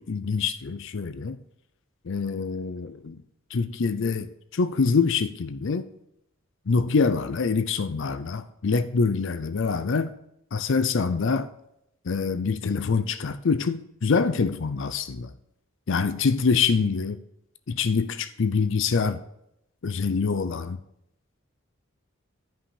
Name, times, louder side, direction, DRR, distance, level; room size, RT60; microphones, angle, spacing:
voice 1, 0.0-1.4 2.1-3.2 3.5-5.9 6.7-10.1 10.5-11.5 12.0-15.3 15.9-17.2 17.7-19.2 19.8-20.8, left 5 dB, 60° left, 0.5 m, -25 dB
10.0 x 5.5 x 4.8 m
head